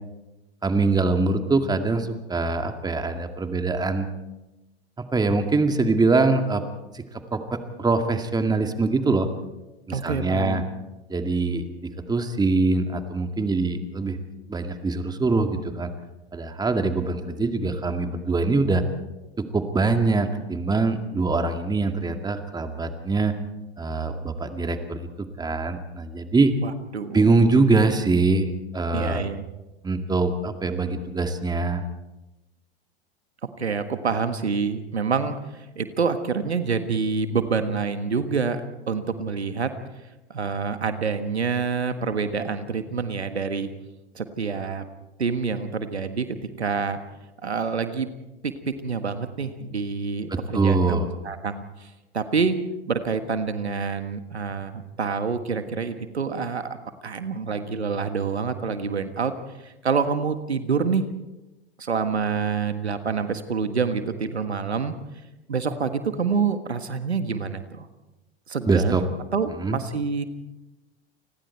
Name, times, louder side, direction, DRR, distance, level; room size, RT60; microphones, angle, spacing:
voice 1, 0.6-4.1 5.1-6.6 6.9-7.0 7.3-9.3 9.9-10.6 11.1-14.2 14.5-15.9 16.3-18.8 19.4-23.3 23.8-26.5 27.1-29.2 29.8-31.8 50.3-51.1 68.7-69.0 69.5-69.8, right 3 dB, 10° right, 6 dB, 2.1 m, -23 dB
voice 2, 9.9-10.6 26.6-27.2 28.9-29.4 33.6-38.6 38.9-39.7 40.3-43.7 44.1-44.8 45.2-47.0 47.4-48.1 48.4-51.0 51.2-52.6 52.9-56.7 57.0-59.3 59.6-61.0 61.8-64.9 65.5-67.9 68.5-69.0 69.3-70.2, right 5 dB, 90° right, 9 dB, 1.6 m, -27 dB
29.5 x 20.5 x 4.5 m, 1.0 s
hypercardioid pair, 95°, 32 cm